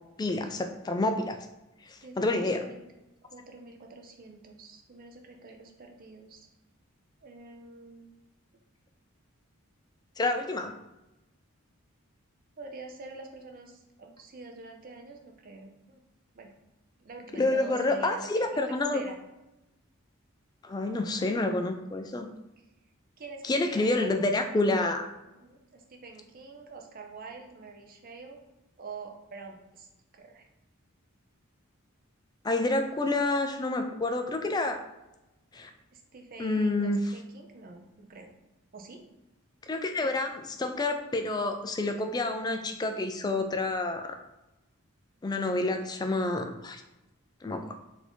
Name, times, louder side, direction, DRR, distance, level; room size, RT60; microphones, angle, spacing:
voice 1, 0.2-1.4 1.9-2.6 10.2-10.7 17.4-19.0 20.6-22.3 23.4-25.1 32.4-34.8 35.5-35.7 36.4-37.0 39.7-44.2 45.2-46.8 47.4-47.7, left 2 dB, 20° left, 6 dB, 0.3 m, -28 dB
voice 2, 2.0-2.8 3.3-6.5 7.2-8.1 12.6-16.0 16.3-16.5 17.0-18.6 18.9-19.2 23.2-24.4 25.2-28.4 28.8-29.9 30.1-30.5 35.9-38.3 38.7-39.0, right 3 dB, 40° right, 3 dB, 0.6 m, -46 dB
4.2 x 2.7 x 4.4 m, 0.98 s
head